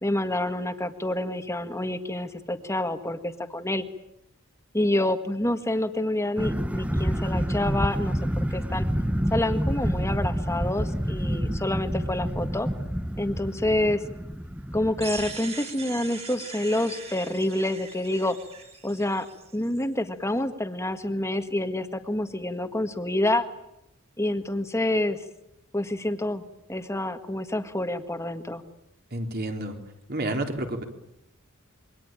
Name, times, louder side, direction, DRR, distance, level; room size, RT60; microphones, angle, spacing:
voice 1, 0.0-3.8 4.7-8.9 9.3-12.7 13.2-14.0 14.7-18.4 18.8-19.3 19.5-23.4 24.2-25.2 25.7-26.4 26.7-28.6, left 1 dB, 15° left, 8 dB, 1.7 m, -27 dB
sound 1, 6.4-15.4, equal, 5° right, 1.0 m, -28 dB
sound 2, 15.0-19.9, right 5 dB, 30° right, 3.9 m, -41 dB
voice 2, 29.1-29.8 30.1-30.8, right 1 dB, 45° right, 4 dB, 3.7 m, -30 dB
27.5 x 23.5 x 9.0 m, 0.84 s
head